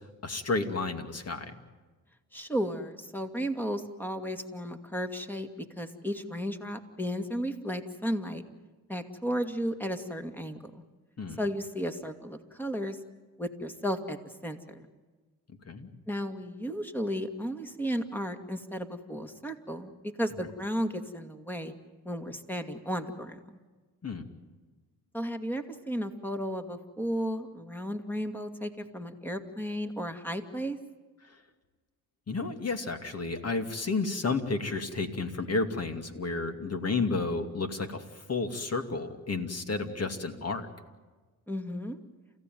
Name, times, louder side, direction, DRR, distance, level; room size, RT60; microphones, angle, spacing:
voice 1, 0.2-1.5 11.2-11.4 15.7-15.9 24.0-24.2 32.3-40.7, left 3 dB, 40° left, 7 dB, 2.6 m, -31 dB
voice 2, 2.3-8.5 8.9-10.8 11.4-13.0 13.4-14.9 16.1-21.7 22.0-23.4 25.1-30.8 41.5-42.0, equal, 5° left, 7 dB, 2.4 m, -34 dB
29.0 x 16.0 x 9.4 m, 1.3 s
cardioid pair, 75°, 39 cm